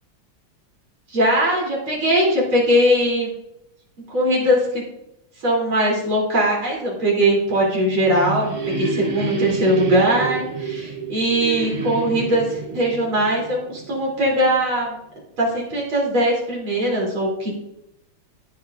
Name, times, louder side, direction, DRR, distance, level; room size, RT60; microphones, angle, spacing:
voice 1, 1.1-3.3 4.1-4.8 5.4-15.0 15.4-17.5, equal, 75° right, -3 dB, 4.3 m, -20 dB
sound 1, 7.6-14.3, right 4 dB, 50° right, 0.5 m, -29 dB
17.0 x 7.7 x 2.6 m, 0.86 s
omnidirectional pair, 2.3 m